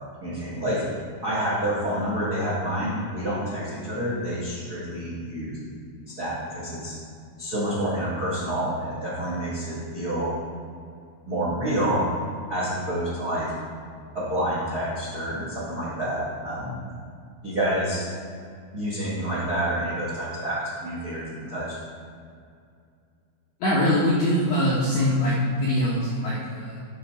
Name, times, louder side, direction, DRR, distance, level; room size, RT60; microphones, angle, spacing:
voice 1, 0.2-0.8 1.2-5.5 6.1-6.9 7.4-10.3 11.3-12.1 12.5-13.5 14.1-16.8 17.4-18.1 18.7-21.8, right 1 dB, 70° right, -7 dB, 0.9 m, -28 dB
voice 2, 23.6-26.8, left 1 dB, 85° left, -6 dB, 1.6 m, -23 dB
10.5 x 5.8 x 4.3 m, 2.3 s
omnidirectional pair, 5.0 m